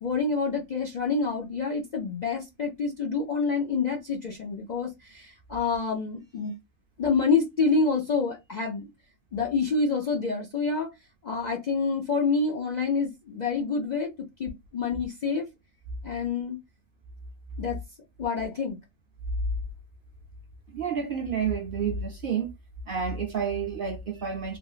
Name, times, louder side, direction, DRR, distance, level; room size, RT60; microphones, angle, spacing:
voice 1, 0.0-6.5 7.0-8.9 9.3-10.9 11.2-15.5 16.0-16.6 17.6-17.8 18.2-18.8, left 4 dB, 55° left, 0.5 m, -27 dB
voice 2, 20.7-22.5 22.9-24.6, right 6 dB, 60° right, 0.6 m, -29 dB
3.3 x 2.3 x 2.3 m
omnidirectional pair, 1.3 m